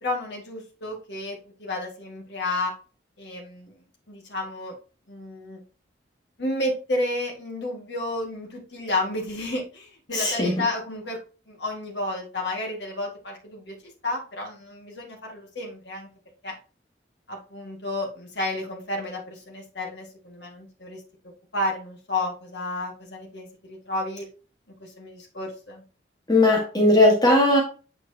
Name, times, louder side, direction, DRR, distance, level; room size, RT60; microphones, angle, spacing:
voice 1, 0.0-2.7 3.2-3.7 4.1-4.8 5.1-5.6 6.4-11.2 11.5-13.8 14.0-16.1 16.4-16.5 17.3-21.0 21.5-24.3 24.8-25.8, left 1 dB, 65° left, -1 dB, 1.9 m, -31 dB
voice 2, 10.1-10.5 26.3-27.6, left 1 dB, 20° left, -1 dB, 1.5 m, -18 dB
8.7 x 4.4 x 2.8 m, 0.35 s
head